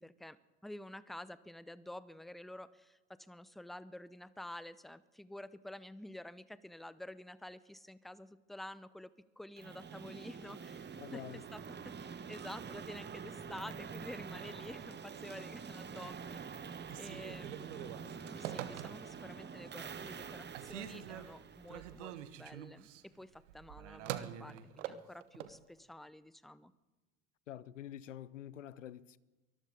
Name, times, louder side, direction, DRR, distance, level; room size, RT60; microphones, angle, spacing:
voice 1, 0.0-9.1 9.4-11.2 11.5-16.4 17.0-22.9 23.1-26.7, left 1 dB, ahead, 0.6 m, -50 dB
sound 1, 9.6-22.4, right 6 dB, 30° right, 1.2 m, -47 dB
sound 2, 10.0-13.2, right 3 dB, 45° right, 6.1 m, -63 dB
voice 2, 11.0-11.4 27.5-29.2, left 11 dB, 90° left, 0.5 m, -47 dB
Telephone, 16.8-19.3 19.8-20.3 20.5-25.6, right 11 dB, 75° right, 1.0 m, -45 dB
23.5 x 13.5 x 3.9 m
hypercardioid pair, 60°, 36 cm